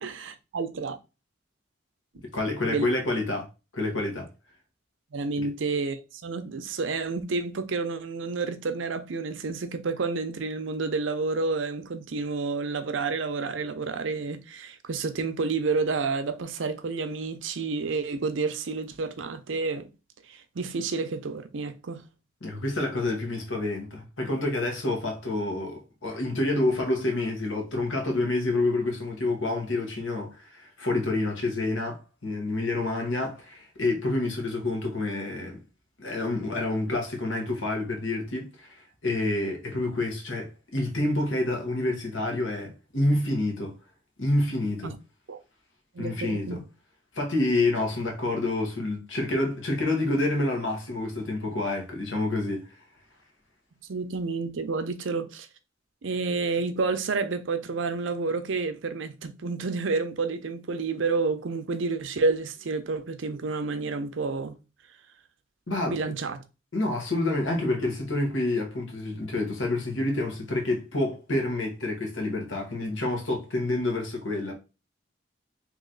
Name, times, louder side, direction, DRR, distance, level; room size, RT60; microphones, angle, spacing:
voice 1, 0.0-1.0 2.7-2.9 5.1-19.9 20.3-22.1 44.8-44.9 45.3-45.4 45.9-46.6 53.9-55.5 56.0-64.5 65.9-66.4, right 4 dB, 85° right, 0.6 m, -30 dB
voice 2, 2.3-3.4 3.7-4.3 5.4-5.5 22.4-35.6 36.0-43.7 44.2-44.9 46.0-46.6 47.1-52.8 65.7-66.1 66.7-74.5, left 2 dB, 90° left, 1.4 m, -28 dB
3.1 x 3.0 x 3.8 m
head